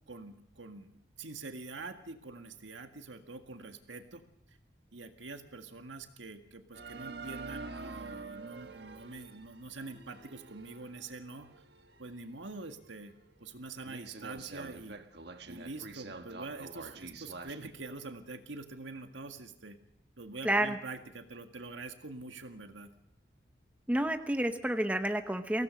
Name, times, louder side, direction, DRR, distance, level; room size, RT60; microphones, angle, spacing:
voice 1, 0.1-4.2 4.9-11.5 12.0-15.0 15.5-19.8 20.2-22.9, right 3 dB, 80° right, 6 dB, 1.9 m, -45 dB
sound 1, 6.7-12.1 12.6-12.7 13.3-13.4 13.9-17.7, right 3 dB, 60° right, 1.4 m, -46 dB
voice 2, 20.4-20.8 23.9-25.6, right 1 dB, 5° right, 7 dB, 0.9 m, -29 dB
23.5 x 17.0 x 6.5 m, 0.78 s
head